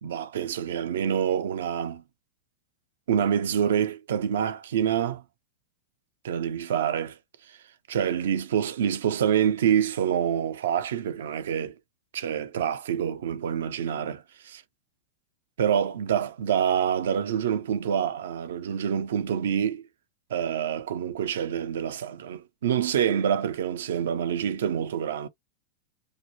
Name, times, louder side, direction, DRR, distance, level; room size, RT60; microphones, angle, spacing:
voice 1, 0.0-2.0 3.1-5.2 6.2-7.2 7.5-7.6 7.9-11.8 12.1-14.6 15.6-19.8 20.3-25.3, right 9 dB, 75° right, 0.5 m, -26 dB
2.8 x 2.1 x 2.8 m
hypercardioid pair, 105°, 0 cm